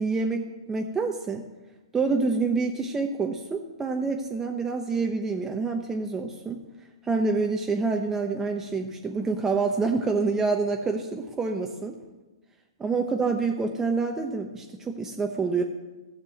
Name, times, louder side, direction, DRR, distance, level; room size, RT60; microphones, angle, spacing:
voice 1, 0.0-1.4 1.9-6.6 7.0-12.0 12.8-15.6, right 4 dB, 15° right, 3 dB, 0.9 m, -27 dB
14.0 x 6.9 x 7.7 m, 1.2 s
hypercardioid pair, 125°, 3 cm